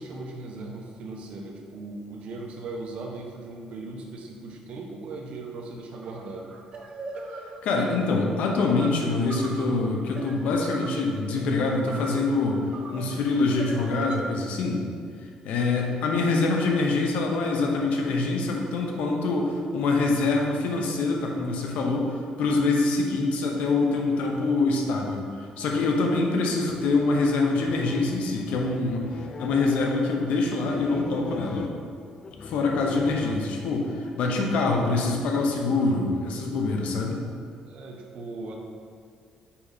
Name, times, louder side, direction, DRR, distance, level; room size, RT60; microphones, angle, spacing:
voice 1, 0.0-6.5 34.2-34.6 37.6-38.6, right 2 dB, 60° right, 1 dB, 1.0 m, -38 dB
sound 1, 6.0-14.2, right 3 dB, 40° right, 0.7 m, -40 dB
voice 2, 7.3-12.6 12.9-14.8 15.4-31.7 32.4-37.2, left 3 dB, 75° left, 1 dB, 0.9 m, -25 dB
sound 2, 26.4-33.9, left 5 dB, 35° left, 0.4 m, -41 dB
5.9 x 4.8 x 4.2 m, 2.1 s
cardioid pair, 125°, 2 cm